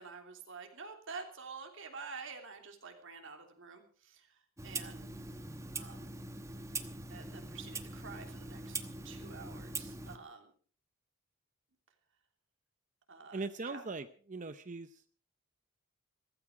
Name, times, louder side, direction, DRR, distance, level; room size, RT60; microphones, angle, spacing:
voice 1, 0.0-5.2 5.7-6.1 7.1-10.5 13.1-13.8, right 5 dB, 60° right, 4 dB, 3.1 m, -49 dB
Clock, 4.6-10.2, right 3 dB, 15° right, 1.1 m, -43 dB
voice 2, 13.3-15.0, right 3 dB, 35° right, 11 dB, 0.7 m, -40 dB
16.0 x 15.0 x 4.9 m, 0.43 s
head